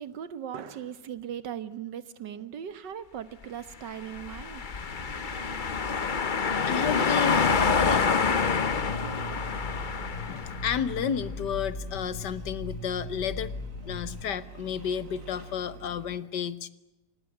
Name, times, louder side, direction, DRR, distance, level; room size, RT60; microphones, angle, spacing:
voice 1, 0.0-4.7, right 9 dB, 85° right, 14 dB, 1.9 m, -38 dB
sound 1, 4.0-10.8, left 5 dB, 35° left, 0.9 m, -27 dB
sound 2, 4.7-16.2, right 3 dB, 50° right, 1.9 m, -47 dB
voice 2, 5.9-7.4 7.8-8.1 10.3-13.5 13.8-16.7, left 8 dB, 75° left, 15 dB, 1.8 m, -32 dB
sound 3, 7.3-14.3, left 2 dB, 55° left, 3.1 m, -38 dB
25.5 x 19.5 x 8.9 m, 0.99 s
omnidirectional pair, 1.9 m